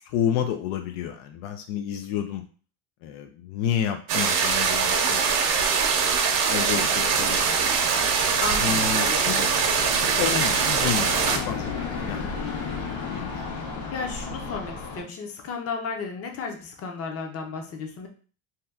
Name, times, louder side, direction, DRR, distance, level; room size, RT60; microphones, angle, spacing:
voice 1, 0.0-2.4 3.0-5.8 6.5-7.9 8.6-9.6 10.0-12.3 12.8-13.6, left 9 dB, 85° left, 6 dB, 0.5 m, -30 dB
sound 1, 4.1-11.4, right 6 dB, 65° right, 0.7 m, -22 dB
sound 2, 6.8-15.0, left 5 dB, 65° left, 1.2 m, -34 dB
voice 2, 8.4-9.2 13.9-18.1, left 4 dB, 40° left, 3 dB, 0.7 m, -33 dB
2.8 x 2.2 x 3.4 m, 0.39 s
cardioid pair, 125°, 38 cm